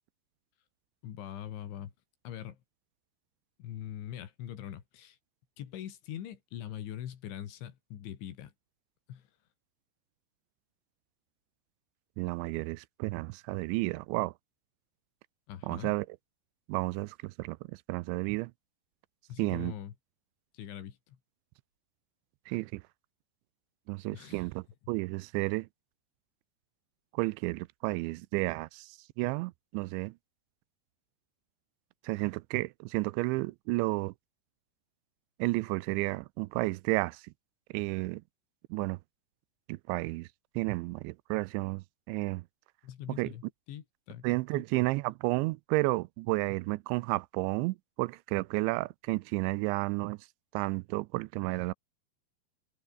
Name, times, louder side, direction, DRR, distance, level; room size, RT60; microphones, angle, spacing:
voice 1, 1.0-1.9 2.2-2.6 3.6-5.2 5.6-8.5 9.1-9.3 15.5-16.0 19.3-19.9 20.5-21.2 24.1-24.4 42.8-44.3 44.5-44.6, left 11 dB, 85° left, 4.7 m, -42 dB
voice 2, 12.2-14.3 15.6-16.1 16.7-17.6 17.9-18.5 19.4-19.7 22.5-22.8 23.9-25.7 27.1-28.9 29.2-30.1 32.0-34.1 35.4-37.3 37.7-38.2 38.7-39.0 39.7-40.3 40.6-42.4 43.2-43.3 44.2-50.2 50.5-51.7, right 23 dB, 90° right, 2.9 m, -32 dB
omnidirectional pair, 5.2 m